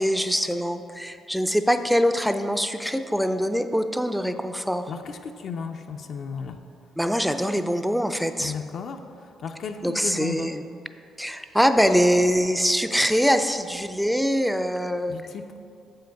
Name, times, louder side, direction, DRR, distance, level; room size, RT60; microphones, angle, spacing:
voice 1, 0.0-4.9 7.0-8.5 9.8-10.6 11.2-15.1, equal, ahead, 8 dB, 0.4 m, -23 dB
voice 2, 4.9-6.6 8.4-10.6 15.1-15.6, left 6 dB, 60° left, 4 dB, 0.5 m, -34 dB
7.4 x 5.7 x 5.1 m, 2.4 s
cardioid pair, 90°, 0 cm